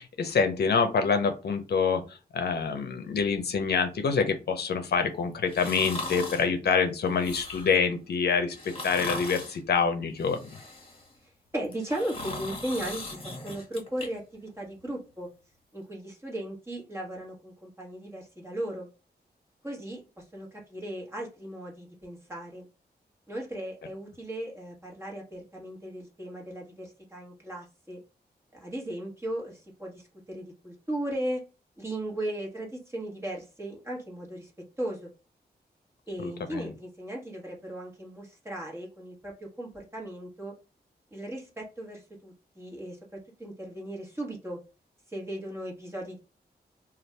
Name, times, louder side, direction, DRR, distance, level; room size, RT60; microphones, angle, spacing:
voice 1, 0.0-10.4 36.2-36.7, left 5 dB, 75° left, 7 dB, 0.6 m, -26 dB
sound 1, 5.5-6.5 7.1-7.8 8.5-9.6 10.2-11.1 11.6-14.1 14.5-14.6, left 2 dB, 35° left, 1.5 m, -39 dB
voice 2, 11.5-15.3 15.7-18.9 19.6-22.7 23.3-28.0 28.5-31.4 31.8-34.5 34.8-35.1 36.1-40.5 41.1-44.6 45.1-46.2, right 1 dB, 15° right, -2 dB, 1.3 m, -37 dB
2.6 x 2.4 x 3.2 m, 0.31 s
cardioid pair, 80°, 17 cm